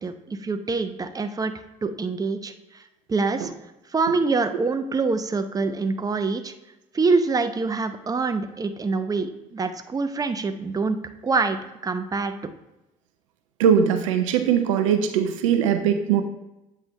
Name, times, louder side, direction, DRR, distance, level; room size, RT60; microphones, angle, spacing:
voice 1, 0.0-1.5 1.8-2.5 3.1-3.5 3.9-6.5 6.9-11.0 11.2-11.6 11.8-12.3, right 4 dB, 20° right, 8 dB, 0.6 m, -25 dB
voice 2, 13.6-16.2, right 8 dB, 80° right, 7 dB, 0.5 m, -20 dB
8.0 x 3.3 x 4.5 m, 0.94 s
figure-of-eight pair, 50°, 17 cm